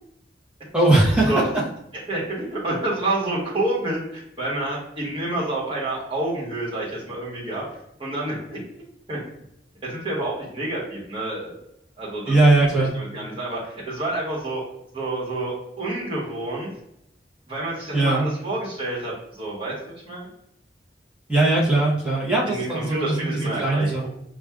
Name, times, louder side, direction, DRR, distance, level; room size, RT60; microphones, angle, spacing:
voice 1, 0.7-1.6 12.3-12.9 17.9-18.3 21.3-24.1, right 2 dB, 5° right, -5 dB, 0.9 m, -20 dB
voice 2, 2.1-7.6 8.0-9.2 9.8-11.6 12.0-12.3 13.1-14.6 14.9-16.7 17.5-20.3 22.5-24.1, right 2 dB, 30° right, -6 dB, 1.3 m, -28 dB
5.9 x 2.4 x 2.4 m, 0.76 s
head